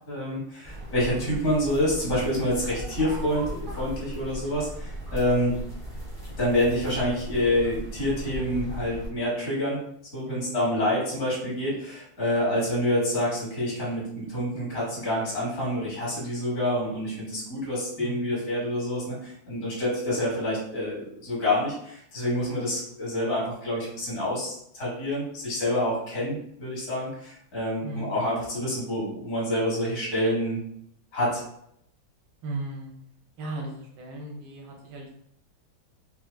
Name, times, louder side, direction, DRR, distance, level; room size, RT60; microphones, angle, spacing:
voice 1, 0.1-5.6 6.4-9.8 10.1-30.6 31.1-31.4, left 1 dB, 45° left, -6 dB, 1.8 m, -27 dB
sound 1, 0.6-9.1, right 1 dB, 40° right, 0.4 m, -37 dB
voice 2, 10.3-10.6 18.0-18.3 27.8-28.2 32.4-33.0 33.4-35.1, right 2 dB, 90° right, 0 dB, 1.4 m, -37 dB
4.1 x 2.4 x 2.2 m, 0.73 s
omnidirectional pair, 2.2 m